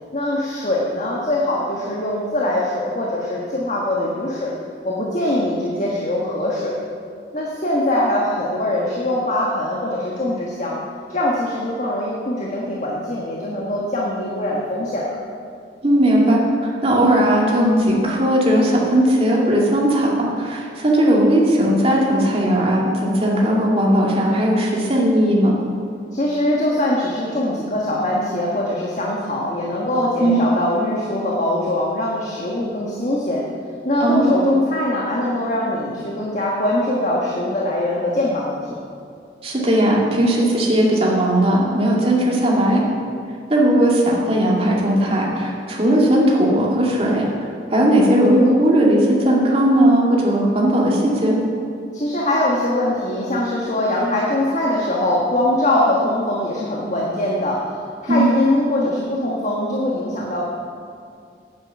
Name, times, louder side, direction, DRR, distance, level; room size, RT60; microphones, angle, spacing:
voice 1, 0.1-4.5 4.8-6.7 7.3-10.8 11.1-15.2 26.1-33.4 33.8-38.7 51.9-57.6 58.0-60.4, left 1 dB, 45° left, -4 dB, 1.5 m, -22 dB
voice 2, 15.8-25.5 30.2-30.4 34.0-34.3 39.4-42.8 43.5-47.3 47.7-51.4 58.1-58.3, right 1 dB, 35° right, -3 dB, 2.3 m, -17 dB
9.5 x 9.2 x 7.4 m, 2.4 s
head